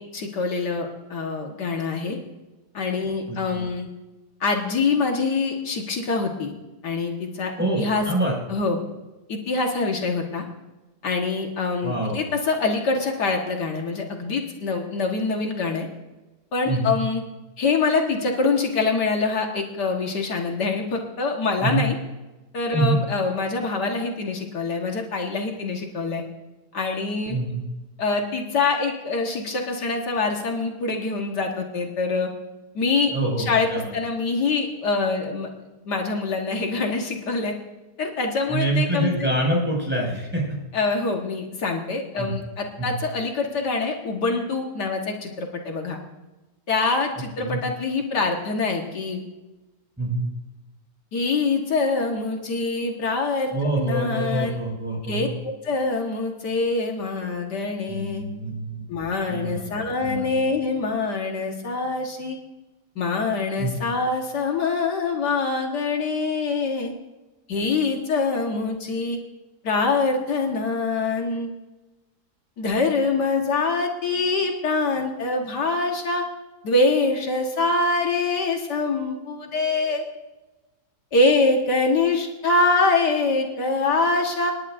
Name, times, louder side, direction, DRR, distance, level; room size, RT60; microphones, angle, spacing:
voice 1, 0.0-2.2 2.7-3.9 4.4-6.5 6.8-7.5 7.8-8.1 8.5-8.8 9.3-10.5 11.0-15.9 16.5-17.2 17.6-22.0 22.5-26.2 26.7-27.4 28.0-32.3 32.8-33.1 33.4-35.5 35.9-37.5 38.0-39.3 40.7-46.0 46.7-49.2 51.1-54.5 55.1-58.2 58.9-62.4 63.0-66.9 67.5-69.2 69.6-71.5 72.6-76.3 76.6-80.0 81.1-84.5, left 3 dB, 80° left, 1 dB, 2.1 m, -24 dB
voice 2, 3.3-3.7 7.6-8.3 11.8-12.2 16.7-17.0 21.6-21.8 22.7-23.0 27.3-27.6 33.1-34.0 38.5-40.6 42.2-42.3 42.8-42.9 47.4-47.6 50.0-50.3 53.5-55.3 57.9-58.9 59.3-59.6 60.0-60.3 63.6-63.7, right 2 dB, 5° right, -3 dB, 6.0 m, -25 dB
27.0 x 11.0 x 2.6 m, 1.1 s
omnidirectional pair, 1.8 m